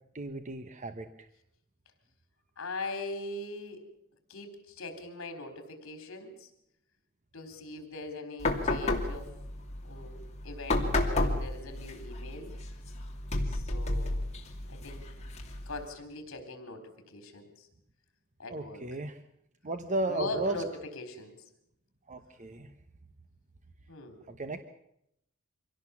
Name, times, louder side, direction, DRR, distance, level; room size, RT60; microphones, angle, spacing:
voice 1, 0.1-1.1 18.5-19.2 19.6-20.6 22.1-22.7 24.3-24.6, right 2 dB, 35° right, 9 dB, 1.0 m, -34 dB
voice 2, 2.6-3.9 4.3-6.5 7.3-9.3 9.8-12.5 13.5-14.2 14.7-15.1 15.7-17.7 18.4-18.8 20.1-20.7 20.9-21.4 23.9-24.2, left 2 dB, 70° left, 7 dB, 4.0 m, -41 dB
sound 1, 8.4-15.9, left 2 dB, 35° left, 2.8 m, -32 dB
25.0 x 17.0 x 7.2 m, 0.78 s
head